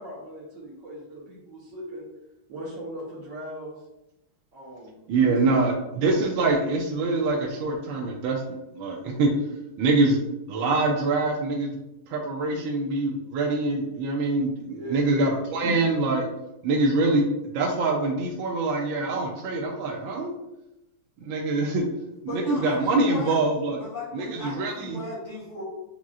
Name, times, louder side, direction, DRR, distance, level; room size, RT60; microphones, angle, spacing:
voice 1, 0.0-2.1 2.5-3.8 4.5-5.7 14.7-15.4, right 1 dB, 70° right, -8 dB, 1.7 m, -38 dB
voice 2, 5.1-9.3 9.8-10.2 10.5-11.8 12.1-16.3 16.6-17.2 17.5-20.3 21.2-21.8 22.2-23.8 24.1-25.0, right 3 dB, 85° right, -1 dB, 1.4 m, -24 dB
voice 3, 22.3-23.4 23.8-25.6, left 2 dB, 60° left, -8 dB, 1.4 m, -36 dB
7.1 x 2.4 x 2.4 m, 0.91 s
omnidirectional pair, 2.1 m